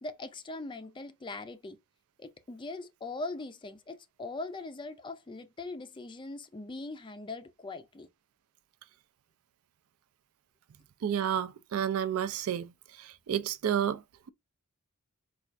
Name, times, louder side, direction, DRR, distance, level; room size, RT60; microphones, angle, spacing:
voice 1, 0.0-1.8 2.2-8.1, left 2 dB, 20° left, 0.4 m, -41 dB
voice 2, 11.0-12.7 13.0-14.0, right 9 dB, 65° right, 0.4 m, -30 dB
4.3 x 2.3 x 2.4 m
head